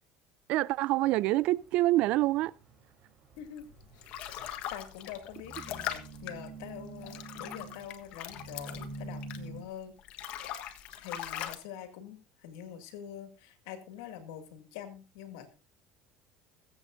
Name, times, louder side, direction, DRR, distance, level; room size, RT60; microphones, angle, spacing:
voice 1, 0.5-2.5, right 17 dB, 65° right, 0.5 m, -26 dB
sound 1, 1.0-9.6, right 3 dB, 50° right, 3.5 m, -47 dB
sound 2, 3.6-9.7 10.0-11.6, left 11 dB, 60° left, 1.4 m, -41 dB
voice 2, 4.7-10.4 11.0-15.5, left 9 dB, 85° left, 2.2 m, -45 dB
21.5 x 8.1 x 2.6 m
supercardioid pair, 100°, 2 cm